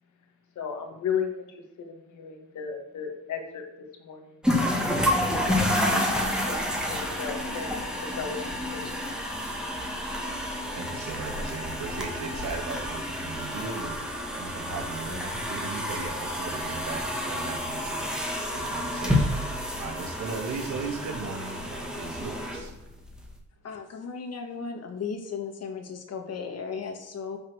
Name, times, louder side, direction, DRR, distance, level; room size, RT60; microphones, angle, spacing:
voice 1, 0.6-3.6 4.0-4.7 5.5-5.8 6.1-7.7 8.2-8.4, left 7 dB, 70° left, 3 dB, 2.2 m, -35 dB
sound 1, 4.4-23.3, left 1 dB, 5° right, 2.3 m, -30 dB
voice 2, 10.8-14.0 14.3-22.7, right 4 dB, 70° right, 4 dB, 2.1 m, -37 dB
voice 3, 23.6-27.4, left 5 dB, 55° left, 5 dB, 2.1 m, -35 dB
10.0 x 5.8 x 6.5 m, 0.89 s
cardioid pair, 90°, 30 cm